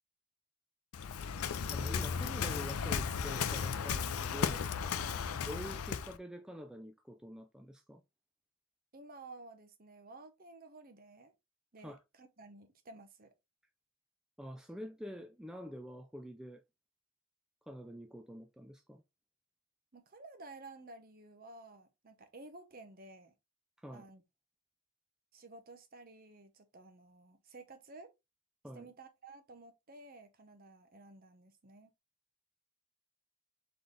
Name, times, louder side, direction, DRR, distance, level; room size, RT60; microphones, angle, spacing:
Waves surf, 0.9-6.2, left 6 dB, 90° left, 0.5 m, -35 dB
voice 1, 1.7-4.7 5.5-8.0 11.8-12.0 14.4-16.6 17.7-19.0 23.8-24.1 28.6-28.9, equal, 5° right, 0.3 m, -46 dB
voice 2, 5.0-5.3 8.9-11.3 11.7-13.3 19.9-23.3 23.9-24.2 25.3-28.1 28.7-31.9, right 2 dB, 40° right, 0.9 m, -53 dB
3.9 x 3.9 x 3.2 m
head